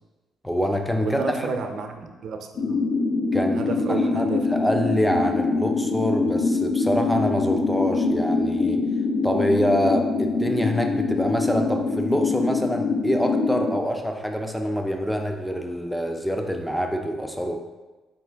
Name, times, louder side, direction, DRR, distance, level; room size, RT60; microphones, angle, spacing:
voice 1, 0.4-1.5 3.3-3.6 3.9-8.8 9.2-17.6, equal, ahead, 4 dB, 0.3 m, -25 dB
voice 2, 1.0-2.9 3.5-4.7, right 5 dB, 60° right, 5 dB, 0.5 m, -31 dB
sound 1, 2.6-13.8, left 3 dB, 80° left, 0.5 m, -24 dB
4.3 x 3.1 x 3.3 m, 1.2 s
cardioid pair, 115°, 0 cm